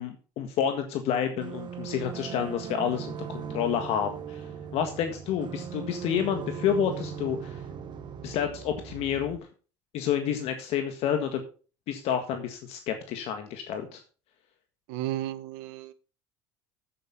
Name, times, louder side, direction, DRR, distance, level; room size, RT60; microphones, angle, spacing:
voice 1, 0.0-4.4 4.7-7.6 8.2-9.4 9.9-11.4 11.9-14.0, left 8 dB, 65° left, 6 dB, 1.7 m, -29 dB
sound 1, 1.4-9.4, right 8 dB, 40° right, 1.5 m, -39 dB
voice 2, 14.9-15.9, right 14 dB, 80° right, 13 dB, 1.1 m, -33 dB
8.5 x 8.3 x 5.6 m, 0.37 s
supercardioid pair, 100°, 11 cm